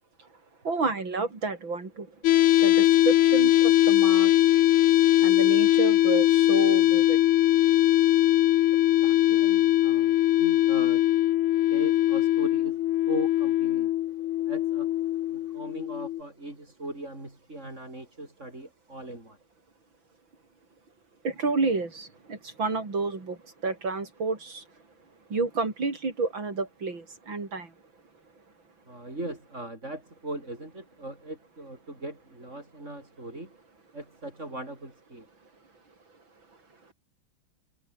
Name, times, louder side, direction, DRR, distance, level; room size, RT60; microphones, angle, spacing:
voice 1, 0.6-2.1 2.6-4.6 5.2-7.2 21.2-23.4 23.6-24.6 25.3-27.7, right 3 dB, 70° right, 5.5 m, -30 dB
sound 1, 2.2-16.2, left 14 dB, 90° left, 1.7 m, -21 dB
voice 2, 9.0-11.0 11.7-13.9 14.5-14.9 15.3-19.4 28.9-33.5 33.9-35.3, right 1 dB, 35° right, 6.9 m, -39 dB
omnidirectional pair, 2.2 m